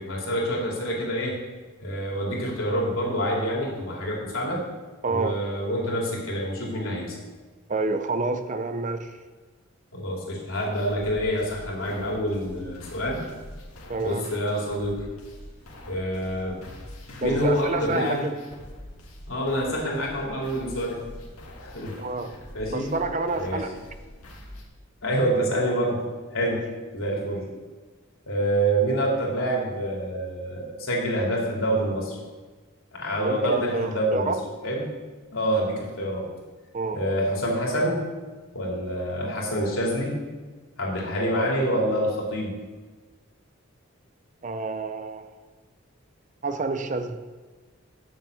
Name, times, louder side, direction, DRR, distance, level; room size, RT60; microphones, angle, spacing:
voice 1, 0.0-1.4 1.8-4.6 5.1-7.1 9.9-13.2 14.0-15.0 15.8-16.6 17.2-18.3 19.3-21.0 21.6-21.9 22.5-22.9 23.4-23.6 25.0-26.0 26.3-26.7 26.9-27.5 28.3-32.2 32.9-34.3 34.6-34.8 35.3-36.3 36.9-38.0 38.5-40.2 40.8-42.5, equal, 75° left, -3 dB, 3.1 m, -26 dB
voice 2, 5.0-5.4 7.7-9.2 13.9-14.3 17.2-18.4 22.0-22.3 22.7-23.7 26.4-26.6 33.2-34.4 36.7-37.0 44.4-45.3 46.4-47.2, right 3 dB, 35° right, 9 dB, 0.5 m, -28 dB
sound 1, 10.5-24.6, left 1 dB, 90° left, 1.9 m, -44 dB
9.0 x 6.9 x 6.6 m, 1.3 s
head